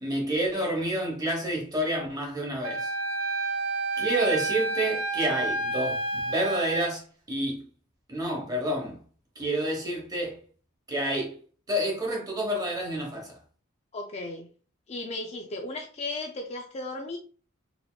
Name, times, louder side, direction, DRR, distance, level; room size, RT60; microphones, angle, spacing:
voice 1, 0.0-2.9 4.0-7.0 7.3-7.6 8.1-9.0 9.4-10.4 10.9-11.3 11.7-13.4, right 1 dB, 20° right, 1.1 m, -29 dB
Wind instrument woodwind instrument, 2.6-6.9, right 2 dB, 75° right, 0.6 m, -30 dB
voice 2, 13.9-14.5 14.9-17.2, left 2 dB, 30° left, 0.4 m, -35 dB
4.1 x 2.8 x 2.2 m
head